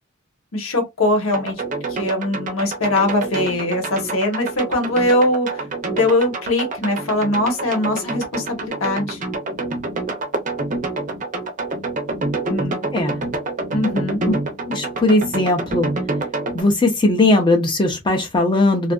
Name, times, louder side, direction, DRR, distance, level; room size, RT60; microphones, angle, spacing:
voice 1, 0.5-1.6 1.9-9.2 12.5-12.9 13.7-14.2, left 1 dB, 80° left, 1.0 m, -21 dB
sound 1, 1.3-16.6, right 2 dB, 35° right, 0.5 m, -27 dB
voice 2, 14.7-15.9 16.5-18.9, left 2 dB, 20° left, 0.5 m, -18 dB
2.5 x 2.3 x 2.3 m
head